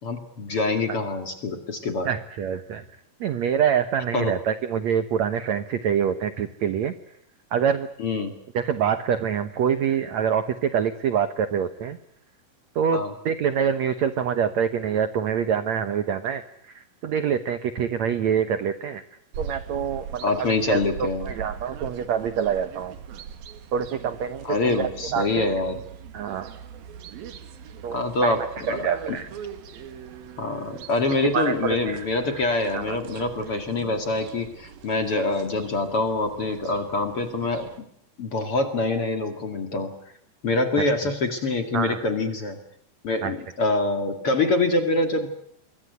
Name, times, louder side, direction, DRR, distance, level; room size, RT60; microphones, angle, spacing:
voice 1, 0.0-2.1 4.1-4.3 8.0-8.3 12.9-13.1 20.2-21.3 24.4-25.8 27.9-28.4 28.7-29.2 30.4-37.9 38.2-40.0 40.4-42.6 43.0-45.4, left 2 dB, 40° left, 7 dB, 2.5 m, -25 dB
voice 2, 2.0-2.9 3.2-6.9 7.5-7.9 8.5-12.0 12.7-19.0 19.4-22.9 23.7-25.5 26.1-26.5 27.8-28.4 28.7-29.3 31.3-32.1 32.3-32.4 32.7-33.0 41.7-42.0 43.2-43.3, right 8 dB, 80° right, 12 dB, 1.5 m, -26 dB
sound 1, 19.3-37.8, right 7 dB, 65° right, 3.5 m, -41 dB
26.5 x 22.5 x 8.1 m, 0.72 s
omnidirectional pair, 4.9 m